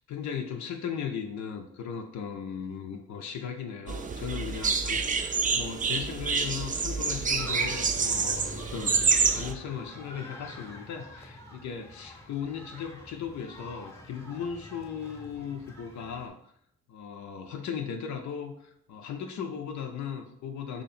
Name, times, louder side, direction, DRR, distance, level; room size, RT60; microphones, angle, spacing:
voice 1, 0.1-9.0 9.3-16.4 16.9-20.8, left 7 dB, 70° left, 4 dB, 0.5 m, -37 dB
sound 1, 3.9-9.5, right 5 dB, 30° right, 0.4 m, -27 dB
sound 2, 7.4-16.3, left 1 dB, 10° left, 0.8 m, -46 dB
3.0 x 2.8 x 4.1 m, 0.71 s
cardioid pair, 75°, 30 cm